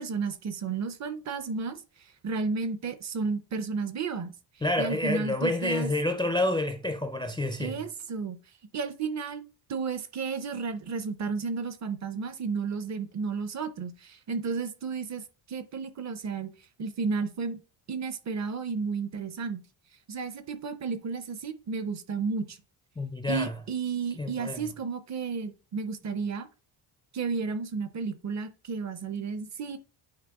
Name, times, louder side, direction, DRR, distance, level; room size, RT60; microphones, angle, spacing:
voice 1, 0.0-4.3 4.8-5.9 7.6-8.4 8.7-9.4 9.7-16.5 16.8-17.6 17.9-19.6 20.1-22.6 23.3-26.5 27.1-29.8, right 5 dB, 35° right, 0.5 m, -32 dB
voice 2, 4.6-7.8 23.0-23.5 24.2-24.7, left 2 dB, 10° left, 0.4 m, -28 dB
8.8 x 4.2 x 3.5 m
cardioid pair, 175°, 47 cm